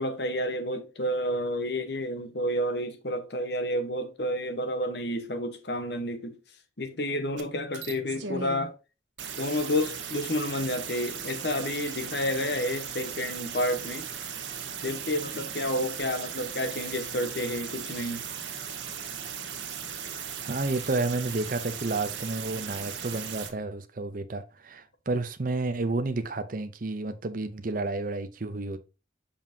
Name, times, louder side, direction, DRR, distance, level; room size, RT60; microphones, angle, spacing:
voice 1, 0.0-6.4 6.8-8.7 9.4-14.1 14.8-18.2, left 1 dB, 60° left, 1.1 m, -30 dB
sound 1, 7.4-7.5 7.7-8.7 9.2-23.5, right 7 dB, 80° right, 1.3 m, -37 dB
voice 2, 20.4-28.8, right 3 dB, 50° right, 0.7 m, -31 dB
7.1 x 5.6 x 2.8 m
head